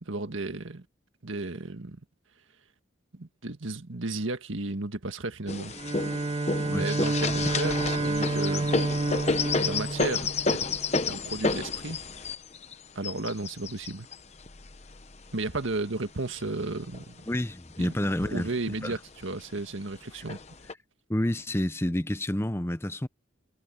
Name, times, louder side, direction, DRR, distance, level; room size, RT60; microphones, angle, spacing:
voice 1, 0.0-0.9 1.2-2.0 3.1-5.7 6.6-8.8 9.5-10.6 11.1-12.0 13.0-14.1 15.3-17.2 17.8-20.4, right 2 dB, 80° right, 1.7 m, -34 dB
sound 1, 5.5-15.7 16.4-17.3 17.7-17.8 18.1-18.8 19.6-19.7 20.3-20.7, left 4 dB, 35° left, 1.0 m, -30 dB
Bowed string instrument, 5.7-10.9, right 2 dB, 25° right, 0.3 m, -29 dB
voice 2, 17.3-19.0 20.1-20.2 21.1-23.1, left 1 dB, 10° left, 0.7 m, -29 dB
head